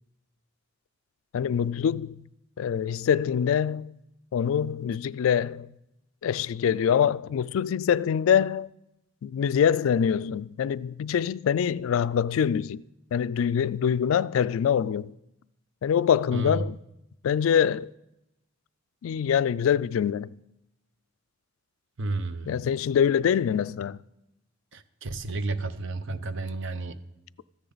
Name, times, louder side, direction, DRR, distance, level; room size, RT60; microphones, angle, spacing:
voice 1, 1.3-2.2 2.6-4.0 4.3-5.7 6.2-8.7 9.2-12.8 13.1-15.1 15.8-16.8 17.2-17.9 19.0-20.3 22.5-24.0, left 8 dB, 70° left, 0.3 m, -24 dB
voice 2, 16.3-16.7 22.0-22.5 24.7-27.0, right 2 dB, 65° right, 0.7 m, -31 dB
14.0 x 9.9 x 4.0 m
head